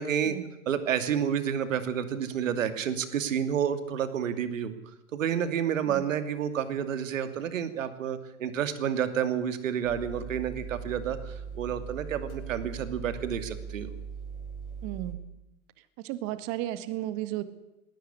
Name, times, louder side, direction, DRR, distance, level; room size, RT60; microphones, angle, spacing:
voice 1, 0.0-0.4 0.7-4.8 5.1-13.9, right 8 dB, 60° right, 10 dB, 2.7 m, -30 dB
sound 1, 9.8-15.1, right 6 dB, 90° left, 7.7 m, -40 dB
voice 2, 14.8-15.2 16.0-17.4, right 14 dB, 35° right, 13 dB, 1.9 m, -33 dB
20.0 x 17.0 x 10.0 m, 0.90 s
hypercardioid pair, 125°, 43 cm